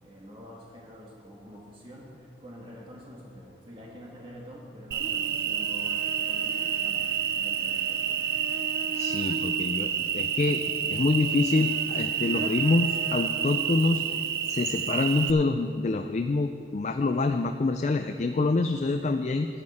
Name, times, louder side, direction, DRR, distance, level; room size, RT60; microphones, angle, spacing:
voice 1, 0.0-8.0, equal, 30° right, -3 dB, 1.6 m, -47 dB
Cricket, 4.9-15.3, right 8 dB, 55° right, 0.4 m, -29 dB
voice 2, 8.9-14.0 14.5-19.5, left 3 dB, 40° left, 6 dB, 0.4 m, -26 dB
11.5 x 11.0 x 4.2 m, 2.4 s
head